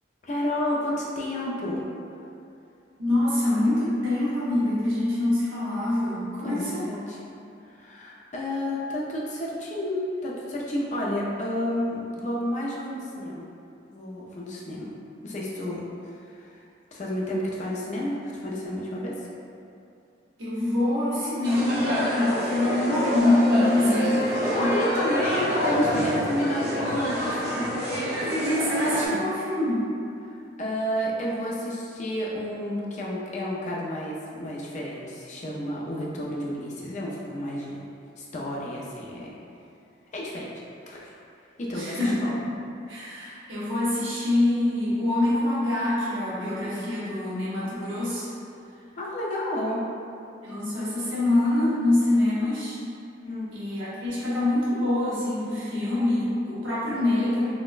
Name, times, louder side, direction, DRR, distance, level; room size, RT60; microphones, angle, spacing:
voice 1, 0.2-1.8 6.4-7.2 7.6-13.5 13.9-14.9 15.2-16.6 16.9-19.3 24.4-27.7 29.1-29.2 30.2-37.8 38.2-39.3 40.1-40.5 40.9-41.2 41.6-42.3 49.0-49.9 53.2-53.5, equal, 40° left, -4 dB, 0.5 m, -31 dB
voice 2, 3.0-6.8 20.4-24.7 28.2-29.8 41.7-42.3 42.9-48.3 50.4-52.8 53.5-57.5, left 1 dB, 90° right, -10 dB, 1.1 m, -25 dB
sound 1, 21.4-29.1, equal, 55° right, 0.7 m, -27 dB
4.0 x 2.1 x 2.4 m, 2.6 s
head